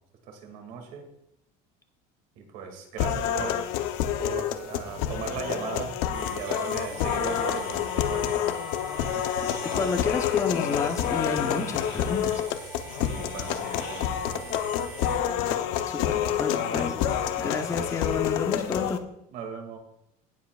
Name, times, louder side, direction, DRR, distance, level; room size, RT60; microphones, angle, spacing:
voice 1, 0.3-1.1 2.4-3.6 4.2-8.4 8.9-9.3 12.9-14.7 16.5-17.0 18.8-18.9 19.3-19.8, right 6 dB, 60° right, 3 dB, 2.3 m, -38 dB
sound 1, 3.0-19.0, left 10 dB, 75° left, 0.8 m, -28 dB
sound 2, 6.1-15.2, right 3 dB, 25° right, 2.6 m, -43 dB
voice 2, 9.6-12.4 15.9-17.0 17.4-19.0, left 4 dB, 15° left, 6 dB, 0.7 m, -30 dB
17.5 x 7.4 x 2.4 m, 0.79 s
cardioid pair, 175°, 18 cm